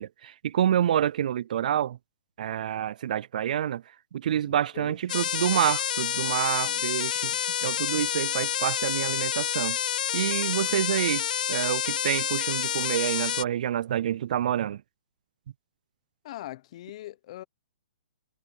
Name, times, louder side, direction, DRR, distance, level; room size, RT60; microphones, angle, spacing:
voice 1, 0.0-2.0 2.4-3.8 4.1-9.8 10.1-14.8, right 10 dB, 55° right, 0.4 m, -28 dB
voice 2, 4.5-5.0 6.6-6.8 16.2-17.4, left 15 dB, 40° left, 0.8 m, -41 dB
sound 1, 5.1-13.4, left 10 dB, 60° left, 0.4 m, -28 dB
hypercardioid pair, 160°, 5 cm